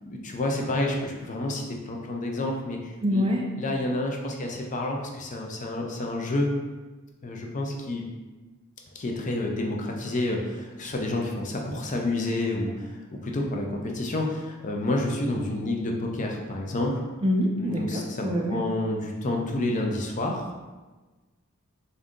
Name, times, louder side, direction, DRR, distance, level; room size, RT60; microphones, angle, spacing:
voice 1, 0.0-3.3 3.5-6.5 7.2-8.0 8.9-17.0 17.6-20.6, left 2 dB, 35° left, 0 dB, 0.5 m, -29 dB
voice 2, 3.0-3.5 17.2-18.6, equal, 25° right, 1 dB, 0.3 m, -25 dB
3.7 x 2.7 x 3.6 m, 1.2 s
head